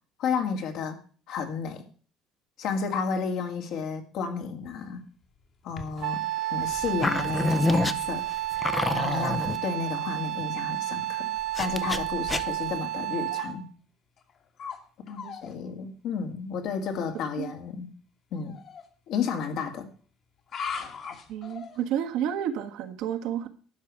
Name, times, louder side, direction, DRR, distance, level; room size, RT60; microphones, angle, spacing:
voice 1, 0.2-1.0 1.3-1.8 2.6-5.0 5.6-6.2 6.5-8.2 8.9-11.3 11.6-13.7 15.1-17.9 18.3-18.6 19.1-19.9, left 5 dB, 65° left, 4 dB, 2.2 m, -32 dB
sound 1, 4.6-6.2 6.9-7.0 7.8-7.9 8.5-8.7 9.1-9.2 9.4-9.7 10.2-10.3 13.3-13.5 14.2-14.8 15.1-15.5 16.9-17.2 18.3-18.9 20.4-22.0, left 5 dB, 45° left, 1.8 m, -40 dB
Wind instrument woodwind instrument, 6.0-13.6, right 14 dB, 60° right, 0.9 m, -31 dB
sound 2, 6.7-9.6 11.5-12.7, left 2 dB, 15° left, 0.6 m, -27 dB
voice 2, 21.3-23.5, right 9 dB, 75° right, 6 dB, 1.5 m, -31 dB
12.0 x 4.9 x 8.2 m, 0.42 s
cardioid pair, 125°, 0 cm